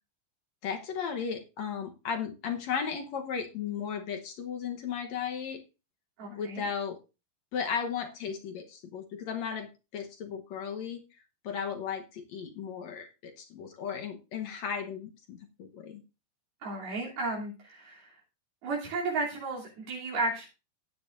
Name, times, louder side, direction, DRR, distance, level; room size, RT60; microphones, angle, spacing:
voice 1, 0.6-5.6 6.3-7.0 7.5-9.7 9.9-11.0 11.4-16.0, left 7 dB, 70° left, 4 dB, 1.7 m, -35 dB
voice 2, 6.2-6.7 16.6-18.1 18.6-20.5, right 2 dB, 75° right, -4 dB, 4.9 m, -33 dB
15.5 x 9.7 x 2.6 m, 0.29 s
omnidirectional pair, 4.4 m